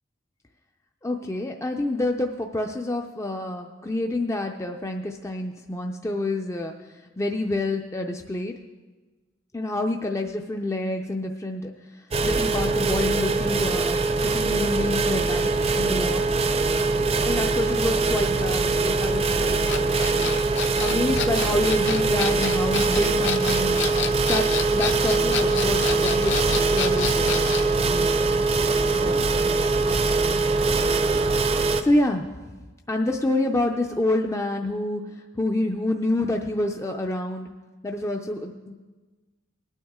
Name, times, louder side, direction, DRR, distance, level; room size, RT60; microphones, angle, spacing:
voice 1, 1.0-6.7 7.2-8.5 9.5-11.7 12.2-14.0 14.3-16.2 17.3-19.9 20.8-23.8 24.3-27.4 27.8-28.3 29.0-29.3 31.8-32.3 32.9-35.0 35.4-37.5 37.8-38.7, left 1 dB, 15° left, 3 dB, 0.5 m, -27 dB
sound 1, 12.1-31.8, right 3 dB, 30° right, 0.6 m, -22 dB
sound 2, 19.6-27.7, left 7 dB, 65° left, 0.8 m, -30 dB
19.5 x 9.2 x 3.6 m, 1.3 s
head